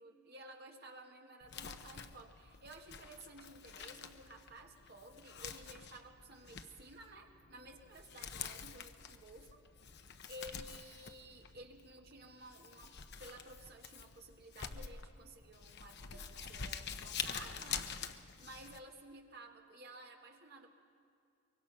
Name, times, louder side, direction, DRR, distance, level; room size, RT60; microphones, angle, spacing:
voice 1, 0.0-9.6 10.0-20.7, right 1 dB, 45° right, 2 dB, 1.9 m, -54 dB
Crumpling crinkling, 1.4-18.8, left 7 dB, 50° left, 0.8 m, -47 dB
24.0 x 23.0 x 5.6 m, 2.5 s
head